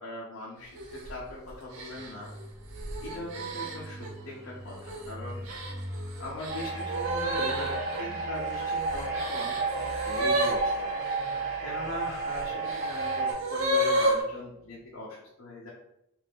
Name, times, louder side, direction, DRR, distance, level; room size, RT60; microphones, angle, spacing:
voice 1, 0.0-2.3 3.0-5.6 6.2-10.9 11.6-15.7, left 1 dB, 85° left, -5 dB, 0.7 m, -41 dB
sound 1, 0.8-1.1 1.7-4.1 4.7-5.1 5.5-11.4 12.1-14.2, right 1 dB, 90° right, 0.6 m, -31 dB
sound 2, 2.0-14.3 14.6-14.8, equal, 10° right, 0.3 m, -45 dB
sound 3, 6.5-13.3, right 4 dB, 50° right, 1.0 m, -32 dB
2.6 x 2.5 x 3.4 m, 0.80 s
head